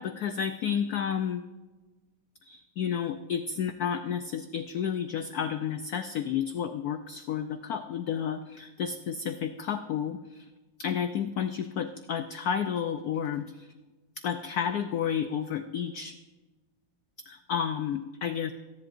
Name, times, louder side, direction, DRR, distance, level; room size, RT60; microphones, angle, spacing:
voice 1, 0.0-1.4 2.4-10.5 10.8-13.7 14.2-16.1 17.3-18.5, left 8 dB, 80° left, 9 dB, 0.8 m, -31 dB
28.0 x 10.5 x 2.5 m, 1.2 s
omnidirectional pair, 2.2 m